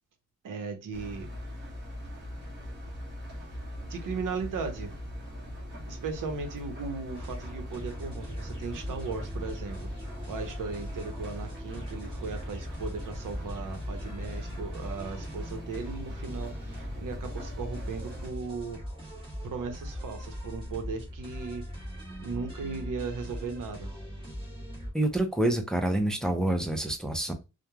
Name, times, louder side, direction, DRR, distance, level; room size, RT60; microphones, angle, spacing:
voice 1, 0.4-1.3 2.0-2.1 3.9-5.0 5.9-9.9 10.3-18.8 19.4-21.6 22.2-23.9, right 4 dB, 85° right, 0.8 m, -37 dB
Engine, 0.9-18.3, left 1 dB, 35° right, 1.0 m, -41 dB
sound 1, 7.1-24.9, equal, 15° right, 1.3 m, -40 dB
voice 2, 24.9-27.3, right 1 dB, ahead, 0.3 m, -27 dB
3.0 x 2.1 x 2.2 m
wide cardioid pair, 175°, 31 cm